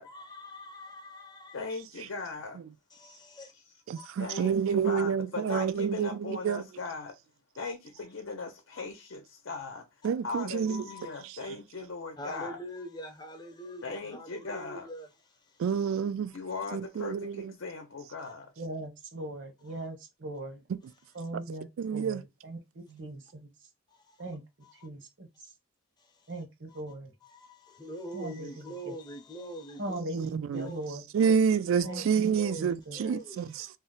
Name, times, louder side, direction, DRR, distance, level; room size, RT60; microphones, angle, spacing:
voice 1, 0.0-1.7 2.9-3.5 4.0-4.1 7.6-7.7 8.7-8.8 10.0-11.2 12.2-15.6 18.2-18.3 23.9-24.2 24.6-24.9 26.0-26.3 26.7-26.8 27.2-30.9 31.2-31.4 31.8-32.1 32.4-33.7, equal, 20° left, 0.5 m, -45 dB
voice 2, 1.5-2.6 4.2-7.1 7.5-9.8 10.2-12.6 13.8-14.9 16.3-18.5, left 3 dB, 80° left, 0.6 m, -39 dB
voice 3, 3.9-6.6 10.0-10.8 15.6-16.3 16.7-17.5 20.7-20.8 21.8-22.2 30.0-30.7 31.1-33.5, right 6 dB, 85° right, 0.3 m, -28 dB
voice 4, 18.6-20.6 21.1-23.5 24.2-24.4 24.7-25.3 26.3-27.1 28.1-28.9 29.8-31.0 31.8-33.0, right 1 dB, 65° right, 0.9 m, -40 dB
2.6 x 2.1 x 3.7 m
head